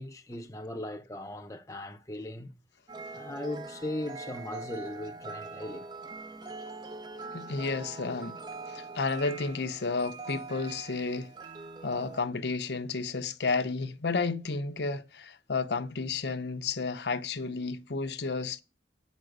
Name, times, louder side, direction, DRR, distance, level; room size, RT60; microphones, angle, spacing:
voice 1, 0.0-2.5 3.1-5.9 6.4-7.2, left 1 dB, 15° left, 0.7 m, -39 dB
sound 1, 2.9-12.2, right 3 dB, 25° right, 0.5 m, -43 dB
voice 2, 7.3-8.4 8.7-11.3 11.8-18.6, left 4 dB, 65° left, 0.7 m, -32 dB
8.7 x 5.1 x 7.8 m
head